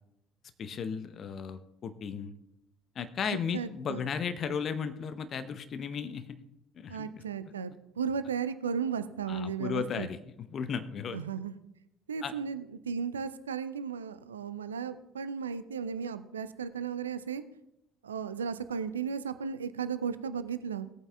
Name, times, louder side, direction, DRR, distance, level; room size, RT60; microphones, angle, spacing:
voice 1, 0.6-2.3 2.9-6.4 6.7-7.2 9.3-11.2 12.2-12.3, left 6 dB, 45° left, 11 dB, 0.8 m, -35 dB
voice 2, 3.5-4.0 6.9-7.7 8.0-10.1 11.1-11.5 12.1-17.4 18.0-20.9, right 6 dB, 80° right, 13 dB, 0.4 m, -35 dB
18.0 x 8.8 x 2.3 m, 0.83 s
figure-of-eight pair, 55°, 0 cm